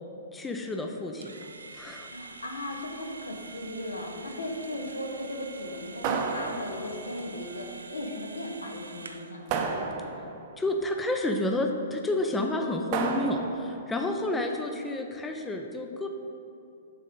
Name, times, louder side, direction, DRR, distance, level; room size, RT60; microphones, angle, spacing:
voice 1, 0.3-1.3 1.7-2.1 10.6-16.1, left 1 dB, 10° left, 3 dB, 0.4 m, -30 dB
sound 1, 1.2-9.4, right 3 dB, 75° right, 0.5 m, -46 dB
voice 2, 2.1-9.7, left 1 dB, 80° left, 1 dB, 1.1 m, -37 dB
sound 2, 6.0-7.1 9.5-10.5 12.9-13.8, right 5 dB, 35° right, 0.7 m, -31 dB
7.4 x 3.7 x 5.3 m, 2.8 s
figure-of-eight pair, 115°, 0 cm